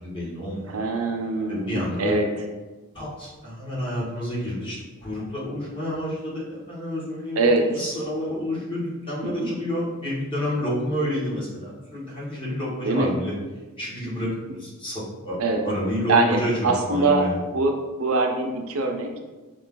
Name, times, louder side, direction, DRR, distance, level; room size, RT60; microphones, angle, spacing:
voice 1, 0.0-0.8 1.5-2.2 2.9-4.8 5.0-7.4 7.7-13.3 13.8-14.3 14.6-17.4, equal, 25° left, -7 dB, 1.5 m, -29 dB
voice 2, 0.7-2.4 7.4-7.7 9.2-9.5 12.8-13.1 14.0-14.1 15.4-15.6 16.1-17.2 17.5-17.7 18.0-19.2, right 3 dB, 80° right, 3 dB, 0.6 m, -23 dB
5.4 x 2.5 x 3.8 m, 1.2 s
head